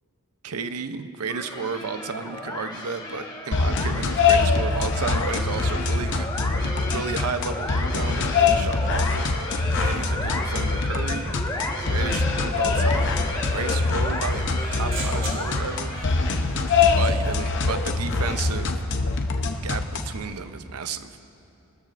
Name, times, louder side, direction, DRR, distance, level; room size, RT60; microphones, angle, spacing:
voice 1, 0.4-6.3 6.6-9.3 9.7-11.3 11.8-13.1 13.5-16.0 17.0-18.7 19.6-21.2, right 5 dB, 80° right, 10 dB, 0.6 m, -33 dB
sound 1, 1.3-16.4, left 2 dB, 20° left, 1.3 m, -34 dB
sound 2, 3.5-20.2, left 4 dB, 55° left, 0.7 m, -24 dB
sound 3, 13.6-17.6, right 3 dB, 60° right, 2.1 m, -41 dB
22.5 x 13.0 x 2.5 m, 2.7 s
head